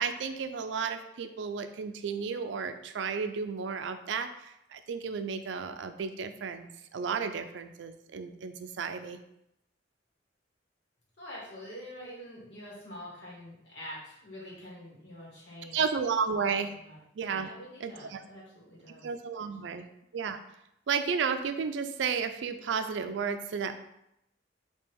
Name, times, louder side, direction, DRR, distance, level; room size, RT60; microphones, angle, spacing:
voice 1, 0.0-9.2 15.7-16.7 17.2-17.5 17.8-18.2 19.0-19.9 20.1-20.4 20.9-23.8, right 6 dB, 75° right, 9 dB, 0.4 m, -33 dB
voice 2, 11.2-15.8 16.8-17.0 17.3-19.1 19.3-19.8, equal, 70° left, -5 dB, 1.7 m, -46 dB
3.5 x 2.9 x 4.5 m, 0.81 s
head